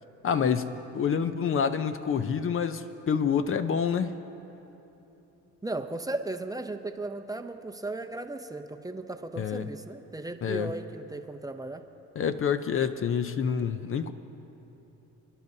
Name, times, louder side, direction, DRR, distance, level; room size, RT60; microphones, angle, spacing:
voice 1, 0.2-4.2 9.4-9.7 10.4-10.7 12.2-14.1, left 7 dB, 45° left, 10 dB, 0.5 m, -27 dB
voice 2, 5.6-11.9, right 2 dB, 10° right, 6 dB, 0.6 m, -36 dB
29.5 x 10.5 x 2.7 m, 3.0 s
cardioid pair, 90°, 30 cm